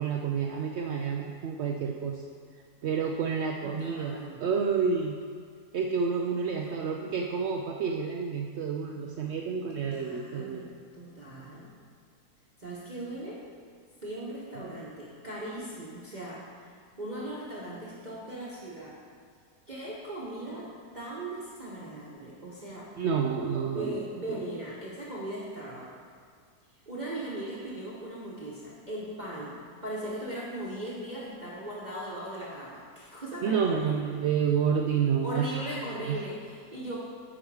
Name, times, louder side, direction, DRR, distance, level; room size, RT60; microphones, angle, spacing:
voice 1, 0.0-2.2 2.8-5.2 5.7-10.7 23.0-24.0 24.3-24.4 33.4-36.2, right 6 dB, 75° right, 1 dB, 0.6 m, -29 dB
voice 2, 3.6-4.4 6.5-7.2 9.7-11.7 12.6-13.4 14.0-18.9 19.7-20.7 20.9-22.9 23.7-25.9 26.9-34.1 35.2-37.0, right 1 dB, 30° right, -7 dB, 1.1 m, -39 dB
10.0 x 5.0 x 4.7 m, 2.1 s
omnidirectional pair, 1.7 m